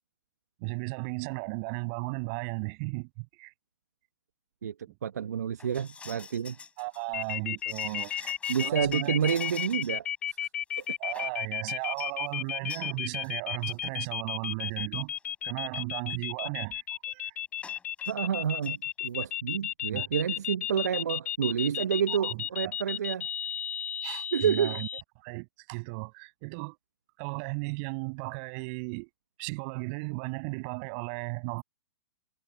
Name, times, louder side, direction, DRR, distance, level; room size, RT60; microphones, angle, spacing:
voice 1, 0.6-3.5 6.8-8.3 8.6-9.3 11.0-15.1 15.4-17.3 19.8-20.1 22.2-22.7 24.0-24.9 25.2-26.8 27.2-29.1 29.4-31.6, right 34 dB, 40° right, 7.8 m, -35 dB
voice 2, 5.0-6.6 7.9-8.0 8.5-10.5 10.8-10.9 18.1-23.3 24.3-24.8, right 8 dB, 70° right, 1.4 m, -29 dB
sound 1, 5.6-10.0 10.3-10.4 10.7-11.4 11.8-12.1 12.7-12.9 13.2-13.4 13.6-13.7 14.5-14.6 15.0-15.2 17.6-18.1 18.4-18.7 19.1-19.2, left 5 dB, 15° left, 7.0 m, -47 dB
sound 2, 7.1-25.0, left 10 dB, 60° left, 3.8 m, -33 dB
figure-of-eight pair, 110°, 9 cm